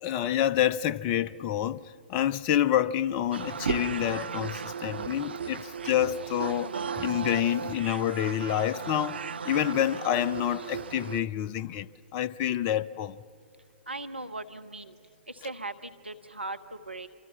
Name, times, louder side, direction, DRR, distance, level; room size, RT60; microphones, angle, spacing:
voice 1, 0.0-9.2 9.4-13.2, left 11 dB, 35° left, 0.6 m, -28 dB
sound 1, 3.3-11.2, right 6 dB, 70° right, 0.9 m, -35 dB
voice 2, 13.9-14.9 15.4-17.1, right 2 dB, 90° right, 1.2 m, -38 dB
25.5 x 25.5 x 7.1 m
figure-of-eight pair, 115°, 6 cm